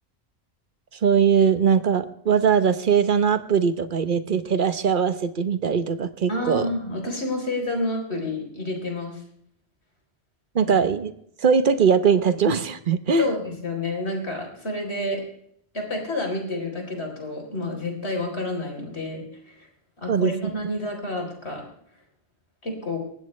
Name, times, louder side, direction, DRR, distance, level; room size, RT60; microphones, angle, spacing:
voice 1, 1.0-6.7 10.5-11.1 11.4-13.3 20.1-20.3, right 6 dB, 50° right, 12 dB, 1.1 m, -21 dB
voice 2, 6.3-9.2 10.6-10.7 13.2-15.2 15.7-19.7 20.0-21.6 22.6-23.0, left 1 dB, 75° left, 2 dB, 4.3 m, -29 dB
19.5 x 15.5 x 3.3 m, 0.71 s
omnidirectional pair, 1.1 m